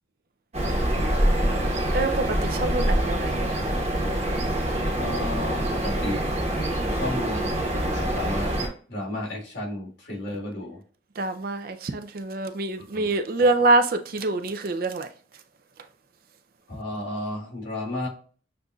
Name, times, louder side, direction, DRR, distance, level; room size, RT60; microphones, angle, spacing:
sound 1, 0.5-8.7, right 1 dB, 35° right, 1.1 m, -25 dB
voice 1, 1.9-3.6 11.2-15.1, right 2 dB, 50° right, 0.4 m, -25 dB
voice 2, 4.9-6.2 6.8-7.4 7.7-10.8 12.8-13.1 13.4-13.5 16.7-18.1, left 1 dB, 75° left, 1.8 m, -33 dB
6.8 x 2.5 x 2.3 m
head